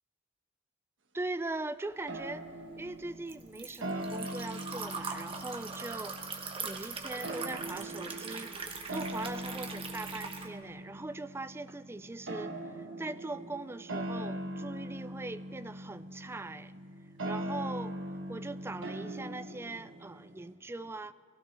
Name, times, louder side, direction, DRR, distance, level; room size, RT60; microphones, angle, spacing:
voice 1, 1.1-6.2 6.6-8.6 8.9-16.7 17.2-18.0 18.3-21.1, right 2 dB, 15° right, 0.3 m, -41 dB
sound 1, 2.1-20.5, right 1 dB, 80° right, 1.3 m, -41 dB
Liquid, 2.2-10.5, right 4 dB, 30° right, 1.2 m, -41 dB
22.0 x 16.5 x 3.4 m
head